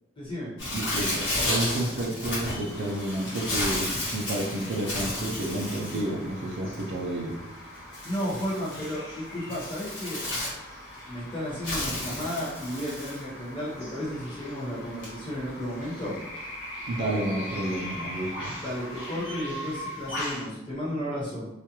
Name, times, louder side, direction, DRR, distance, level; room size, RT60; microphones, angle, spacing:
voice 1, 0.1-0.5 8.0-10.2 11.1-16.1 18.6-21.5, equal, 25° left, -8 dB, 1.1 m, -33 dB
Bird, 0.6-20.5, left 1 dB, 70° left, 1.1 m, -34 dB
voice 2, 0.7-7.4 16.8-18.5, right 1 dB, 65° right, 0 dB, 0.5 m, -30 dB
sound 1, 2.7-19.3, left 1 dB, ahead, 0.7 m, -47 dB
2.4 x 2.3 x 2.9 m, 1.0 s
head